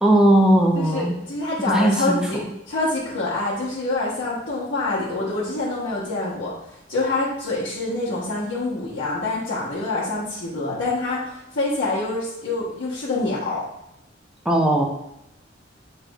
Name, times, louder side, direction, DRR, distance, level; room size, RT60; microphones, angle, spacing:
voice 1, 0.0-1.1 1.7-2.2 14.5-14.8, right 1 dB, 5° right, 0 dB, 0.5 m, -17 dB
voice 2, 0.7-6.5 6.9-13.6, left 2 dB, 85° left, -9 dB, 0.9 m, -26 dB
6.1 x 3.3 x 2.3 m, 0.82 s
head